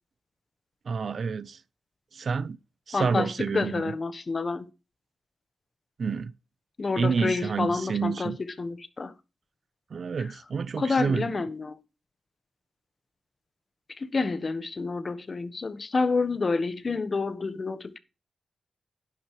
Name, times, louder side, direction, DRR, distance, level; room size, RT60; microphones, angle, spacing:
voice 1, 0.9-1.6 2.1-2.6 2.9-3.9 6.0-6.3 7.0-8.4 9.9-11.3, right 5 dB, 60° right, 0.5 m, -29 dB
voice 2, 2.9-4.7 6.8-9.1 10.2-10.3 10.8-11.8 14.0-18.0, left 3 dB, 40° left, 1.2 m, -29 dB
11.5 x 10.5 x 3.1 m
cardioid pair, 90°, 0 cm